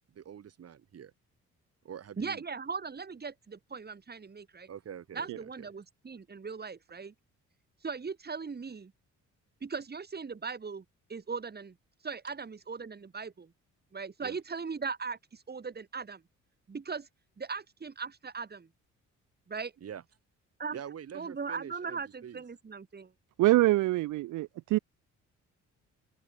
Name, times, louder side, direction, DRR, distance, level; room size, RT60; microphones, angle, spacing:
voice 1, 0.1-1.1 1.8-2.4 4.7-5.7 14.2-14.4 19.8-20.0 20.7-22.4, right 8 dB, 55° right, 2.2 m, -45 dB
voice 2, 2.2-4.7 5.1-7.1 7.8-8.9 9.6-10.8 11.1-11.8 12.0-13.5 13.9-16.2 16.7-17.1 17.4-18.7 19.5-19.7 20.6-20.8 21.1-23.1, right 5 dB, 30° right, 3.9 m, -39 dB
voice 3, 23.4-24.8, right 17 dB, 80° right, 0.7 m, -25 dB
open air
cardioid pair, 90°, 30 cm